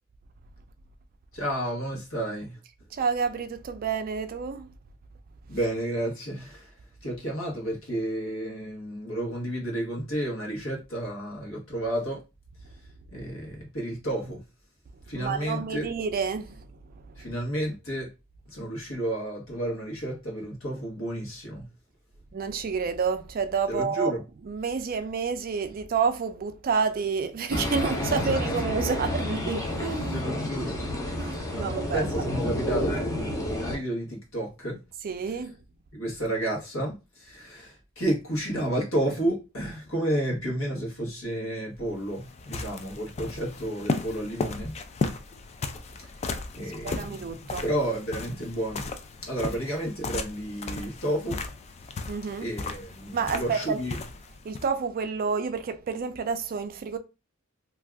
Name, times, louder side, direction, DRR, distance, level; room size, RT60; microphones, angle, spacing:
voice 1, 1.3-2.6 5.5-6.7 7.0-12.2 13.1-14.4 15.1-15.9 17.2-18.1 18.5-21.7 23.7-24.2 28.2-28.5 30.1-30.8 31.4-34.8 35.9-44.7 46.0-46.1 46.5-48.9 49.2-51.4 52.4-54.0, right 1 dB, 70° left, 1.2 m, -31 dB
voice 2, 2.9-4.7 15.1-16.7 16.9-17.3 22.3-24.1 24.4-30.2 31.2-32.0 35.0-35.6 46.8-47.6 52.1-52.5 53.1-53.8 54.4-57.0, right 5 dB, 45° right, 0.4 m, -29 dB
sound 1, 27.5-33.8, left 1 dB, 15° left, 0.7 m, -30 dB
sound 2, 41.7-54.7, left 3 dB, 30° left, 0.3 m, -35 dB
2.6 x 2.4 x 3.3 m
head